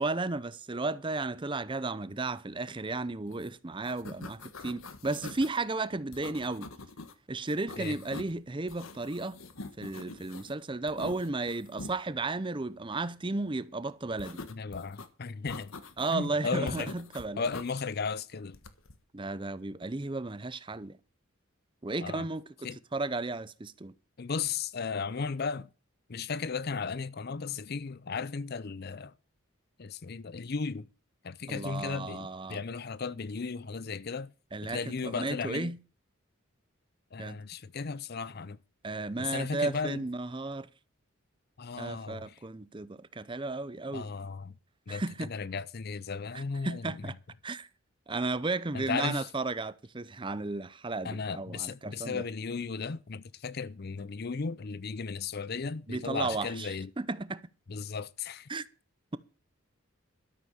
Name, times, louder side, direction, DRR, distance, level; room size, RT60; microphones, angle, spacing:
voice 1, 0.0-6.7 7.3-9.4 9.8-14.4 16.0-17.4 19.1-21.0 21.8-23.9 31.5-32.6 34.5-35.8 37.2-37.4 38.8-40.7 41.8-44.1 44.9-45.3 46.3-47.2 47.4-47.7 48.1-52.2 55.9-56.7 57.0-57.4 58.5-58.6, right 3 dB, 25° right, 0.6 m, -34 dB
sound 1, 3.3-3.5 3.7-5.6 6.1-7.1 7.5-8.4 8.7-10.5 10.9-12.0 14.2-15.1 15.5-16.3 16.7-17.7 18.5-19.0, left 3 dB, 80° left, 1.4 m, -45 dB
voice 2, 14.5-15.7 16.1-16.9 17.4-18.6 22.0-22.3 22.6-22.8 24.2-25.7 26.1-29.1 29.8-30.9 31.2-34.3 34.6-35.7 37.1-38.6 39.2-40.0 41.6-42.3 43.9-44.5 44.9-46.9 48.7-49.3 51.0-56.9 57.7-58.5, left 5 dB, 50° left, 0.6 m, -35 dB
13.0 x 8.2 x 6.4 m
head